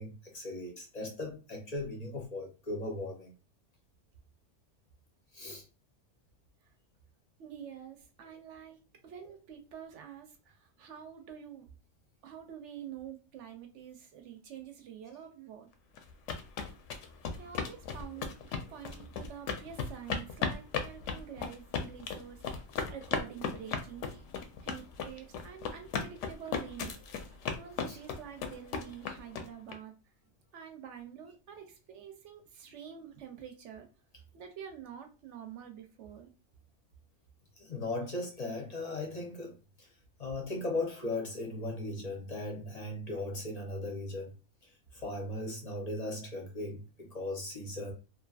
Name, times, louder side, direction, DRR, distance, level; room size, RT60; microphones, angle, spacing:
voice 1, 0.0-3.3 5.3-5.6 27.9-28.0 37.6-39.9 40.2-44.3 44.6-47.9, left 2 dB, 40° left, 0.6 m, -38 dB
voice 2, 7.4-11.7 12.2-15.7 17.4-22.6 22.9-24.2 24.6-29.9 30.5-33.9 34.3-36.3, right 8 dB, 70° right, 0.9 m, -47 dB
sound 1, 16.0-29.7, left 6 dB, 70° left, 0.9 m, -36 dB
2.7 x 2.4 x 2.3 m
omnidirectional pair, 1.3 m